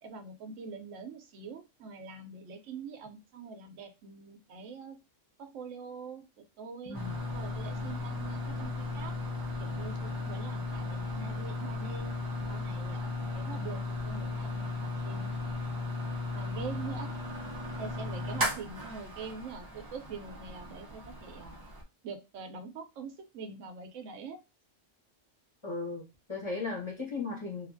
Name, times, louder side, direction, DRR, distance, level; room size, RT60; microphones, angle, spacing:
voice 1, 0.0-5.0 5.4-7.0 7.3-9.1 9.6-12.1 12.5-15.4 16.3-17.1 17.8-21.6 22.0-24.4, right 5 dB, 90° right, 1.0 m, -44 dB
voice 2, 6.8-7.2 25.6-27.7, left 4 dB, 25° left, 0.9 m, -36 dB
sound 1, 6.9-21.8, left 2 dB, 30° right, 0.4 m, -36 dB
2.7 x 2.4 x 2.5 m
omnidirectional pair, 1.3 m